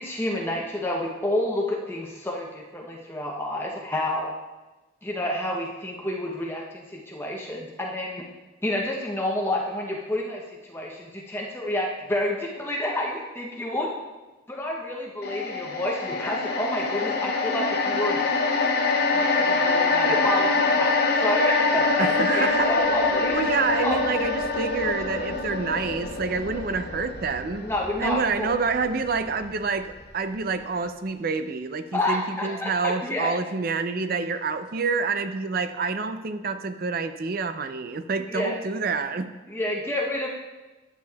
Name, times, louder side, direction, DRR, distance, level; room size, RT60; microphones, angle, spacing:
voice 1, 0.0-4.3 5.0-8.3 8.6-13.9 14.5-18.6 19.1-20.5 20.8-23.3 23.8-24.0 27.6-28.5 31.9-33.3 38.3-38.6 39.5-40.3, left 1 dB, 10° left, -2 dB, 0.7 m, -29 dB
sound 1, 15.2-29.6 29.9-30.1, left 3 dB, 50° left, 0.7 m, -25 dB
voice 2, 22.0-22.7 23.3-27.7 28.0-39.3, right 4 dB, 45° right, 10 dB, 0.5 m, -27 dB
11.0 x 8.3 x 2.3 m, 1.2 s
head